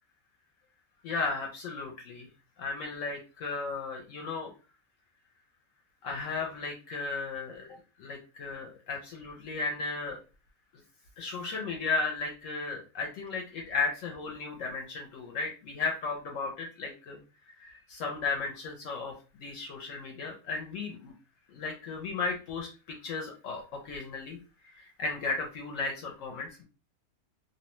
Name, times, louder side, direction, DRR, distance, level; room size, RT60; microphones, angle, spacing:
voice 1, 1.0-2.3 2.6-4.5 6.0-7.7 8.0-10.2 11.2-17.2 17.6-21.1 21.5-24.4 24.7-26.6, left 4 dB, 70° left, 1 dB, 0.9 m, -35 dB
2.6 x 2.1 x 2.9 m, 0.34 s
omnidirectional pair, 1.6 m